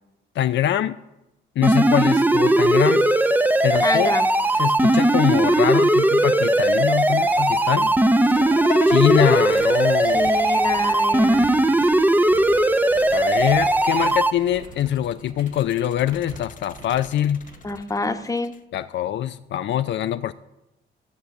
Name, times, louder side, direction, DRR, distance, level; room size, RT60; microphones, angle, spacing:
voice 1, 0.4-1.0 1.6-3.1 3.6-4.1 4.6-8.0 8.9-10.3 13.1-17.4 18.7-20.3, left 11 dB, 65° left, 10 dB, 0.5 m, -23 dB
sound 1, 1.6-14.3, right 1 dB, 10° right, 0.6 m, -18 dB
voice 2, 3.8-4.3 10.1-11.5 17.6-18.5, left 2 dB, 15° left, 7 dB, 1.1 m, -27 dB
sound 2, 4.3-4.4 4.8-5.0 5.3-5.6 5.9-6.9 7.1-18.4, right 2 dB, 85° right, 3.0 m, -46 dB
sound 3, 8.2-11.0 12.3-13.8 14.4-18.6, left 7 dB, 40° left, 0.8 m, -36 dB
14.5 x 6.5 x 7.1 m, 0.93 s
cardioid pair, 90°, 20 cm